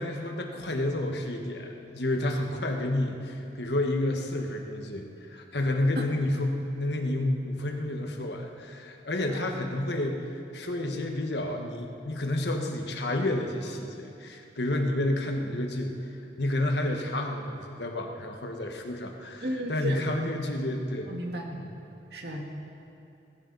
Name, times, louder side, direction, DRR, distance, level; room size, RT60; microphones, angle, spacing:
voice 1, 0.0-16.0 16.4-21.1 21.5-21.7, left 1 dB, 75° left, 3 dB, 1.4 m, -30 dB
voice 2, 19.4-20.0 21.1-21.5 22.1-22.4, right 1 dB, 65° right, 1 dB, 1.9 m, -34 dB
19.5 x 14.5 x 4.1 m, 2.7 s
head